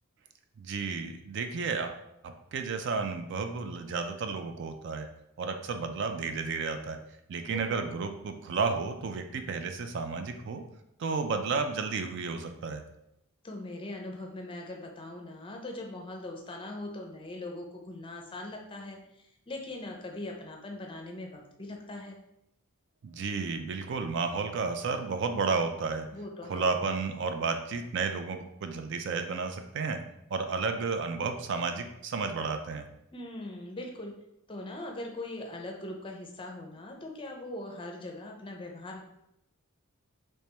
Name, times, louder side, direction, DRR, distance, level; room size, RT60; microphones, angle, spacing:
voice 1, 0.6-1.9 2.2-5.1 5.4-7.0 7.3-10.6 11.0-12.8 23.0-26.1 26.5-30.0 30.3-32.9, right 4 dB, 55° right, 7 dB, 0.4 m, -32 dB
voice 2, 7.5-7.9 13.4-22.2 26.1-26.7 33.1-34.1 34.5-39.1, left 1 dB, 25° left, 2 dB, 0.5 m, -41 dB
3.3 x 3.2 x 2.9 m, 0.81 s
head